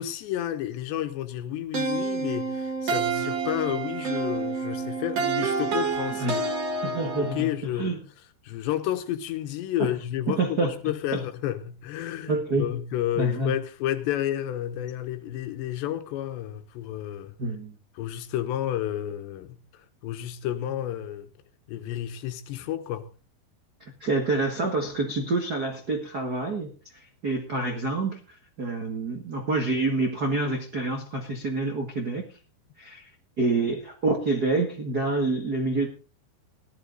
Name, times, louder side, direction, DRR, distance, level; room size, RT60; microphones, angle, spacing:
voice 1, 0.0-6.5 7.1-7.9 8.4-17.3 18.0-21.3 21.7-23.1, left 12 dB, 80° left, 3.3 m, -31 dB
sound 1, 1.7-7.5, right 4 dB, 45° right, 2.7 m, -28 dB
voice 2, 6.8-7.5 7.8-8.0 9.8-9.9 10.3-10.7 11.1-11.2 12.3-12.7 13.2-13.5 17.4-17.7 24.0-26.7 27.2-28.2 28.6-32.2 32.8-33.1 33.4-35.9, right 3 dB, 80° right, 0.8 m, -27 dB
16.5 x 12.0 x 4.0 m
omnidirectional pair, 5.0 m